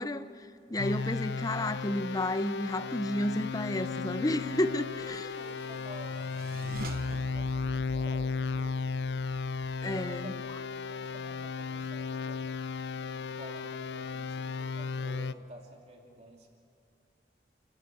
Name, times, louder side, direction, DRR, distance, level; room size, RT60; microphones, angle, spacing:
voice 1, 0.0-5.3 9.8-10.3, left 1 dB, 20° left, 12 dB, 0.6 m, -31 dB
sound 1, 0.8-15.3, left 4 dB, 90° left, 0.5 m, -35 dB
voice 2, 3.1-3.4 4.7-9.2 9.8-12.5 12.9-16.5, right 1 dB, 35° right, 0 dB, 3.1 m, -52 dB
sound 2, 4.7-10.3, right 2 dB, 55° right, 1.0 m, -46 dB
29.5 x 14.5 x 7.8 m, 2.6 s
head